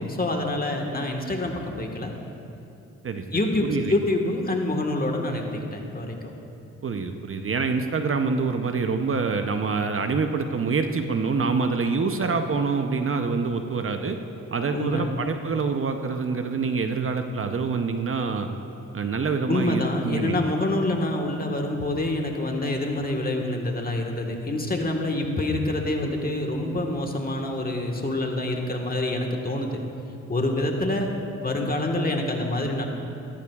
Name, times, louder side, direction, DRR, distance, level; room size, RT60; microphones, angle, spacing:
voice 1, 0.0-2.1 3.3-6.2 14.7-15.1 19.5-29.8 30.3-31.1 31.3-32.9, left 2 dB, 30° left, 2 dB, 1.5 m, -26 dB
voice 2, 3.6-4.0 6.8-14.2 14.5-18.5 18.9-20.4, right 4 dB, 45° right, 6 dB, 0.7 m, -26 dB
15.5 x 13.5 x 2.4 m, 2.8 s
cardioid pair, 65°, 31 cm